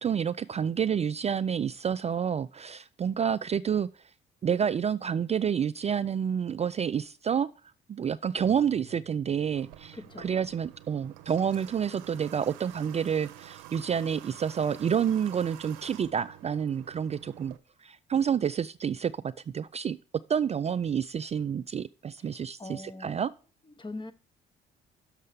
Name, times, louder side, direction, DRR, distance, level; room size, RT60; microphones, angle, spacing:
voice 1, 0.0-3.9 4.4-7.5 7.9-17.5 17.8-20.0 20.3-23.3, right 8 dB, 35° right, 0.4 m, -29 dB
sound 1, 8.4-14.6, right 4 dB, 55° left, 3.2 m, -61 dB
Water / Water tap faucet, 9.6-17.6, right 14 dB, 90° right, 0.6 m, -49 dB
voice 2, 9.9-10.4 22.2-23.2 23.8-24.1, left 2 dB, 25° left, 1.0 m, -42 dB
6.5 x 5.5 x 6.7 m
supercardioid pair, 65°, 20 cm